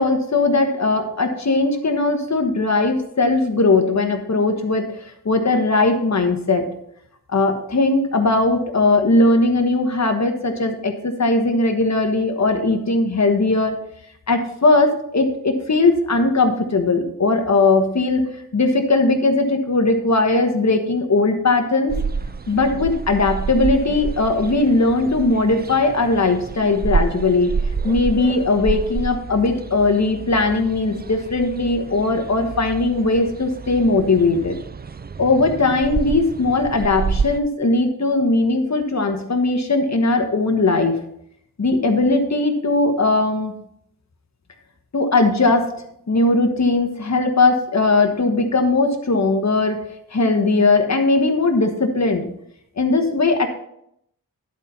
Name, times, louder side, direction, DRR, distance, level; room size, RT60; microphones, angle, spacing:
voice 1, 0.0-4.9 5.2-6.7 7.3-13.8 14.3-18.2 18.5-21.9 22.5-27.5 27.8-34.6 35.2-41.0 41.6-43.5 44.9-45.7 46.1-49.8 50.1-52.3 52.8-53.5, left 3 dB, 50° left, 5 dB, 1.4 m, -19 dB
sound 1, 21.9-37.4, right 5 dB, 30° right, 0.4 m, -28 dB
11.0 x 4.4 x 5.5 m, 0.73 s
wide cardioid pair, 70°, 35 cm